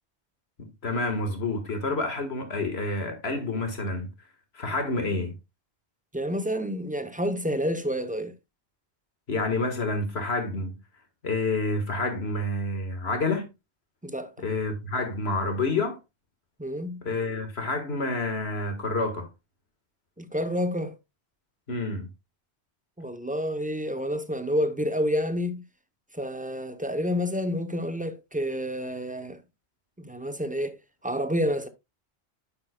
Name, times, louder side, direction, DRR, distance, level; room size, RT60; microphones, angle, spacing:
voice 1, 0.6-4.1 4.5-5.3 9.3-10.8 11.2-13.5 14.4-16.0 17.0-19.3 21.7-22.1, left 2 dB, 65° left, 1.9 m, -28 dB
voice 2, 6.1-8.3 14.0-14.3 16.6-17.0 20.2-20.9 23.0-25.6 26.1-29.4 30.0-30.8 31.0-31.7, equal, 10° right, 0.6 m, -29 dB
9.9 x 7.5 x 2.2 m
omnidirectional pair, 1.1 m